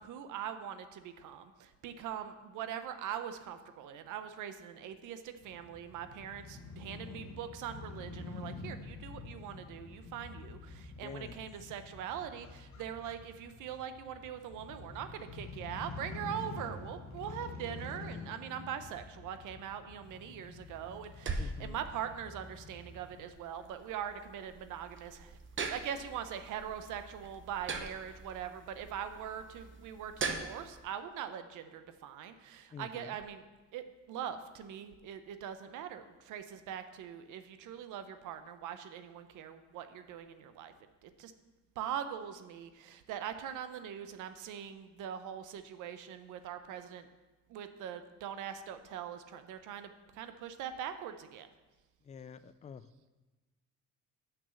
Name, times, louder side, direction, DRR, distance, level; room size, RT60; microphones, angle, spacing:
voice 1, 0.0-25.4 25.7-33.4 33.7-40.7 41.0-41.3 41.8-47.1 47.5-51.5, right 9 dB, 90° right, 10 dB, 0.7 m, -42 dB
Crow / Motorcycle, 5.4-23.2, left 3 dB, 65° left, 1.0 m, -47 dB
voice 2, 11.0-11.5 21.4-21.8 32.7-33.2 52.0-52.9, left 6 dB, 25° left, 14 dB, 0.3 m, -47 dB
sound 1, 20.1-30.8, right 4 dB, 40° right, 0.9 m, -42 dB
6.2 x 6.0 x 6.9 m, 1.2 s
cardioid pair, 90°, 30 cm